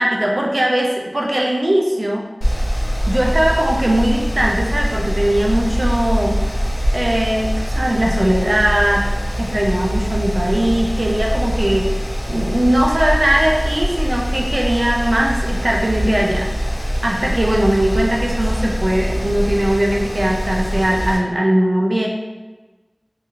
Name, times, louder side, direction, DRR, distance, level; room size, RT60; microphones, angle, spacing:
voice 1, 0.0-2.2 3.1-6.4 6.9-9.0 9.4-12.0 12.3-22.1, right 1 dB, 75° right, -1 dB, 0.4 m, -19 dB
Mechanical fan, 2.4-21.2, equal, 80° left, 0.5 m, -23 dB
2.9 x 2.6 x 2.4 m, 1.2 s
wide cardioid pair, 45°, 0 cm